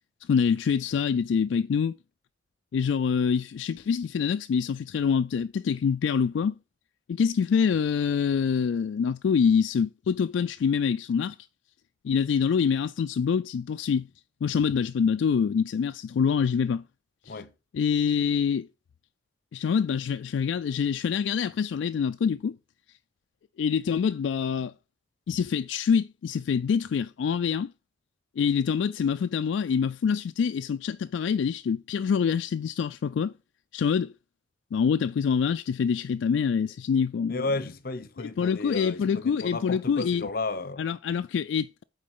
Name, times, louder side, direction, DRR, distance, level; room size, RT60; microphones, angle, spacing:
voice 1, 0.2-1.9 2.7-6.6 7.1-11.4 12.0-14.1 14.4-16.8 17.3-17.4 17.7-18.7 19.5-22.6 23.6-24.7 25.3-27.7 28.4-33.3 33.7-34.1 34.7-37.5 38.2-40.3 40.8-41.8, left 6 dB, 70° left, 0.3 m, -25 dB
voice 2, 37.3-40.9, left 3 dB, 50° left, 0.7 m, -33 dB
8.4 x 3.9 x 5.4 m
head